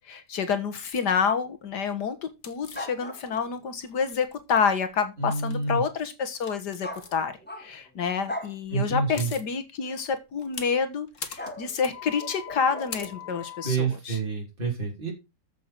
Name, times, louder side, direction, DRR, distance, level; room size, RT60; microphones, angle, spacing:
voice 1, 0.1-14.2, left 6 dB, 85° left, 10 dB, 2.0 m, -28 dB
sound 1, 0.8-1.1 2.4-3.5 3.8-4.8 5.3-5.6 6.3-7.1 8.7-8.8 8.9-9.5 10.0-13.7, left 7 dB, 50° left, 1.8 m, -41 dB
sound 2, 2.7-3.6 6.8-7.9 8.3-8.6 9.8-10.1 11.4-13.6, left 1 dB, 5° left, 1.2 m, -40 dB
voice 2, 5.2-5.8 8.7-9.3 13.6-15.1, right 4 dB, 30° right, -2 dB, 4.1 m, -28 dB
14.0 x 6.9 x 4.6 m, 0.26 s
omnidirectional pair, 1.7 m